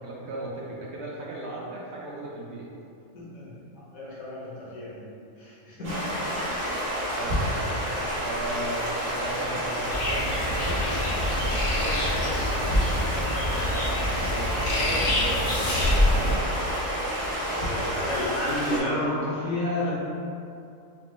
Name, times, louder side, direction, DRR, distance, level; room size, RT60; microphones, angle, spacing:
voice 1, 0.0-2.6 7.1-7.7 8.2-10.9 11.7-12.8 14.3-15.5 16.0-16.5, right 2 dB, 65° right, -5 dB, 0.8 m, -37 dB
voice 2, 3.1-3.5 3.9-5.0 5.4-5.9 17.5-19.9, left 1 dB, 85° left, -9 dB, 1.6 m, -31 dB
Stream, 5.8-18.8, equal, 80° right, 1.4 m, -29 dB
sound 1, 9.9-16.3, left 1 dB, 55° left, 0.6 m, -26 dB
4.1 x 2.1 x 3.0 m, 2.5 s
omnidirectional pair, 1.4 m